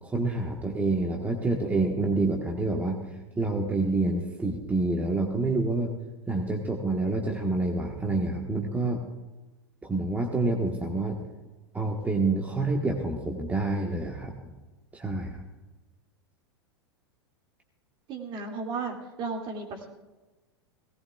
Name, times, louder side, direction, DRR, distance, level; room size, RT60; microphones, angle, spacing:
voice 1, 0.0-5.9 6.3-9.0 9.8-11.2 11.7-14.5 14.9-15.4, right 2 dB, 10° right, 1 dB, 1.5 m, -28 dB
voice 2, 18.1-19.9, right 4 dB, 35° right, 2 dB, 2.5 m, -34 dB
18.5 x 17.5 x 2.4 m, 1.1 s
figure-of-eight pair, 90°, 14 cm